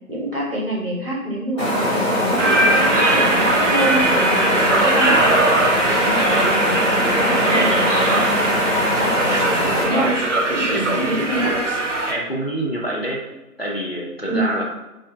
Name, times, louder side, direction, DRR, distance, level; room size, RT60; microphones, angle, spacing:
voice 1, 0.1-5.4 5.9-6.8 7.1-8.2 9.0-9.2 9.8-10.1 10.5-11.6 14.2-14.5, right 1 dB, 40° right, -4 dB, 1.1 m, -25 dB
sound 1, 1.6-9.8, equal, 20° left, 1.0 m, -21 dB
sound 2, 2.4-12.1, right 2 dB, 55° right, 0.5 m, -20 dB
voice 2, 6.1-6.5 9.9-11.5 12.1-13.2 13.6-14.6, right 1 dB, 40° left, -3 dB, 0.5 m, -27 dB
4.2 x 2.6 x 2.5 m, 1.0 s
figure-of-eight pair, 165°, 46 cm